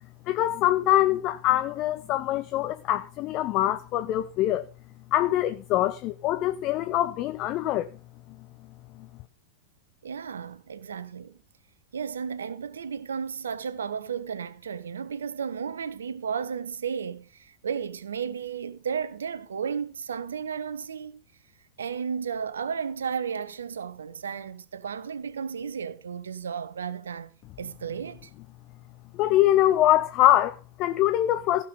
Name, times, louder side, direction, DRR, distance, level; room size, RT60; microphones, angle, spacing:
voice 1, 0.3-4.6 5.1-7.9 29.1-31.6, left 13 dB, 40° left, 0.6 m, -24 dB
voice 2, 10.0-11.4 11.9-21.2 21.8-27.3 27.6-28.3, right 7 dB, 70° right, 0.9 m, -33 dB
15.5 x 7.0 x 5.3 m
figure-of-eight pair, 90°, 0 cm